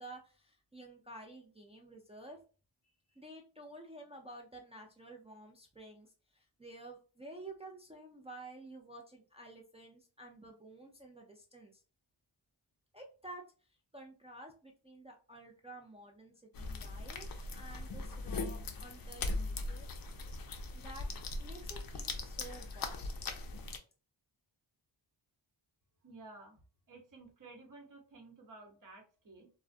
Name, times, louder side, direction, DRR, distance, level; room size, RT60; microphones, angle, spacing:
voice 1, 0.0-2.4 3.2-11.7 12.9-13.4 13.9-17.3 17.5-19.9 20.7-21.1 21.4-23.1, right 2 dB, 15° right, 0 dB, 0.4 m, -51 dB
sound 1, 16.5-23.8, left 3 dB, 50° left, 0.5 m, -40 dB
voice 2, 26.0-26.6 26.9-29.5, right 3 dB, 40° right, 1 dB, 0.9 m, -54 dB
2.4 x 2.1 x 2.4 m, 0.36 s
cardioid pair, 65°, 48 cm